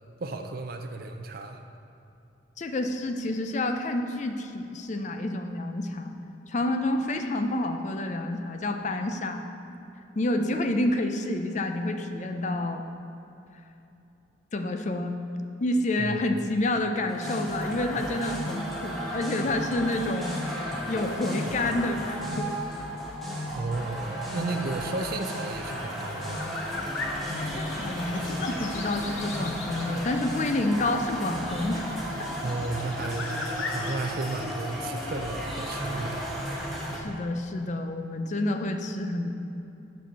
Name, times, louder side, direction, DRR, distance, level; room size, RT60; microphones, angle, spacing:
voice 1, 0.2-1.6 16.0-16.2 23.5-24.0 24.3-26.5 32.4-33.3 33.7-36.3, right 3 dB, 50° right, 6 dB, 0.5 m, -33 dB
voice 2, 2.6-6.2 6.5-9.5 10.2-12.8 14.5-15.2 15.6-20.4 20.9-22.5 27.3-32.0 36.9-39.3, left 1 dB, 40° left, 6 dB, 0.4 m, -29 dB
sound 1, 17.1-37.0, equal, ahead, 1.0 m, -34 dB
sound 2, 26.0-34.4, left 3 dB, 90° left, 0.9 m, -39 dB
7.5 x 4.4 x 6.7 m, 2.9 s
head